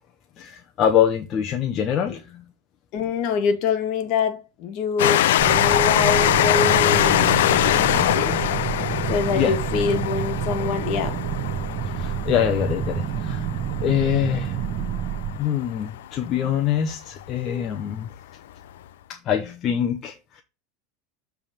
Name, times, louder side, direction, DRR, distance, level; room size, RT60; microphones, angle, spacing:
voice 1, 0.4-2.4 9.3-9.6 11.8-13.5 13.8-14.6 15.3-18.1 19.1-20.4, left 9 dB, 35° left, 0.7 m, -24 dB
voice 2, 2.9-8.4 9.1-11.2, left 6 dB, 50° left, 1.4 m, -25 dB
Train, 5.0-16.2 16.9-17.0 17.2-17.3, left 13 dB, 85° left, 0.4 m, -23 dB
sound 1, 5.4-15.4, right 9 dB, 35° right, 0.8 m, -28 dB
7.3 x 3.5 x 6.3 m
supercardioid pair, 140°, 0 cm